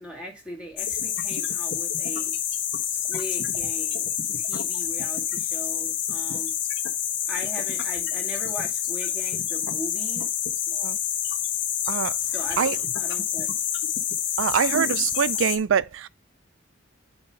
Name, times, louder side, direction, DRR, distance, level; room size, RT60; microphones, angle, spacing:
voice 1, 0.0-2.4 2.8-6.5 7.3-10.3 12.2-13.5, equal, 5° right, 2.2 m, -39 dB
sound 1, 0.8-15.6, left 9 dB, 60° left, 1.3 m, -28 dB
voice 2, 14.4-16.1, right 7 dB, 70° right, 0.4 m, -24 dB
8.8 x 3.0 x 5.8 m
head